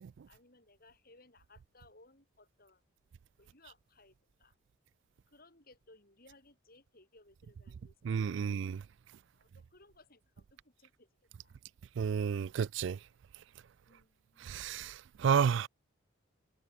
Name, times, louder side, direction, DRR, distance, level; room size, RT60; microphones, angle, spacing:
voice 1, 0.3-2.8 3.4-4.5 5.3-8.6 9.3-11.1 11.4-11.6 13.8-14.8, left 2 dB, 45° left, 6.2 m, -63 dB
voice 2, 8.0-8.8 12.0-13.0 14.4-15.7, right 7 dB, 60° right, 0.3 m, -31 dB
head